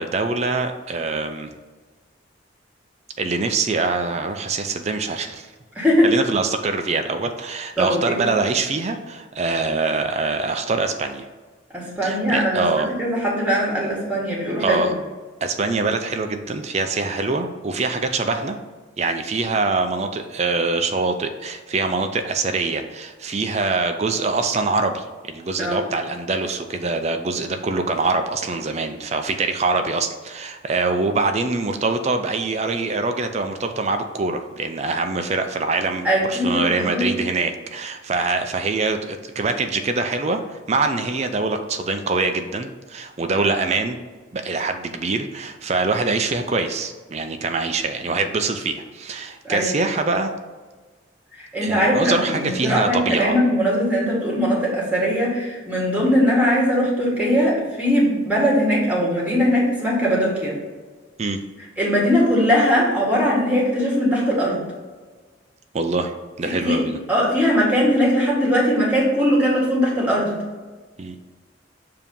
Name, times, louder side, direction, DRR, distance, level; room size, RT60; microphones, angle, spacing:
voice 1, 0.0-1.5 3.2-5.5 6.0-11.3 12.0-12.9 14.6-14.9 15.4-18.6 19.0-44.0 44.3-50.3 51.6-53.3 61.2-61.4 65.7-67.0 71.0-71.2, right 3 dB, 35° right, 7 dB, 0.4 m, -24 dB
voice 2, 5.7-6.1 7.8-8.2 11.7-14.9 25.6-25.8 36.0-37.1 49.4-49.8 51.4-60.5 61.8-64.6 66.5-66.8 67.1-70.3, equal, 10° right, -4 dB, 1.7 m, -20 dB
7.1 x 2.8 x 5.3 m, 1.4 s
head